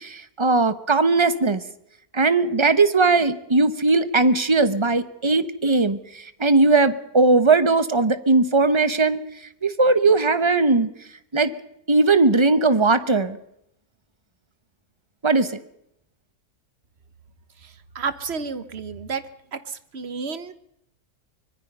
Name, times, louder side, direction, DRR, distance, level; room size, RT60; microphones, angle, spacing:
voice 1, 0.0-1.6 2.1-6.0 6.4-9.2 9.6-10.9 11.3-11.5 11.9-13.4 15.2-15.6, right 3 dB, 20° right, 13 dB, 0.9 m, -19 dB
voice 2, 17.6-19.2 19.5-20.5, right 5 dB, 45° right, 13 dB, 1.4 m, -31 dB
24.5 x 21.0 x 5.5 m, 0.76 s
omnidirectional pair, 1.6 m